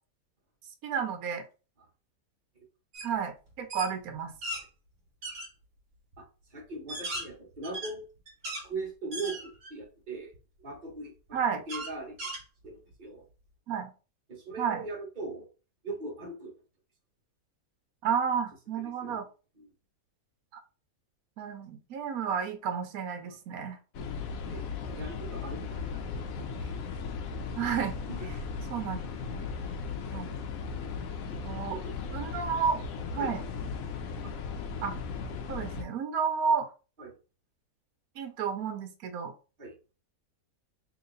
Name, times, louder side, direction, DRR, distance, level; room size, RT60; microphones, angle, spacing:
voice 1, 0.8-1.4 3.0-4.3 11.3-11.6 13.7-13.9 14.6-14.9 18.0-19.2 20.5-20.6 21.4-23.8 27.6-28.0 28.7-29.4 30.1-30.3 31.3-31.8 32.1-32.8 33.1-33.4 34.8-35.0 35.5-36.7 38.2-39.3, right 7 dB, 75° right, 7 dB, 1.2 m, -31 dB
sound 1, 2.9-3.1 3.5-4.6 5.2-5.5 6.1-6.2 6.7-8.7 9.1-9.8 10.3-10.4 11.7-12.9, right 1 dB, 60° right, 1.3 m, -38 dB
voice 2, 6.5-8.0 8.6-10.3 10.6-12.3 12.6-13.3 14.3-15.5 15.8-16.5 19.0-19.3 19.6-19.7 23.3-23.4 24.5-26.0 26.4-26.7 28.1-28.3 31.3-31.4 31.7-31.9 32.3-32.4 33.2-33.4 34.2-34.3 37.0-37.1 39.6-39.7, right 3 dB, 35° right, -1 dB, 1.3 m, -40 dB
sound 2, 23.9-35.8, left 5 dB, 70° left, 1.0 m, -37 dB
3.0 x 2.9 x 3.8 m, 0.33 s
omnidirectional pair, 1.6 m